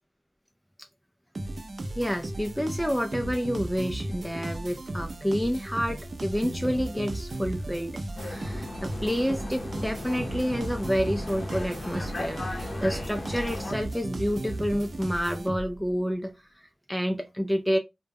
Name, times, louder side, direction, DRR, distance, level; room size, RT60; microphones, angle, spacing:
sound 1, 1.3-15.9, right 1 dB, 55° right, 0.5 m, -35 dB
voice 1, 1.9-7.9 8.2-17.8, equal, 5° left, 0.3 m, -29 dB
sound 2, 8.2-13.7, left 2 dB, 55° left, 0.6 m, -37 dB
2.1 x 2.1 x 3.3 m
cardioid pair, 45°, 0 cm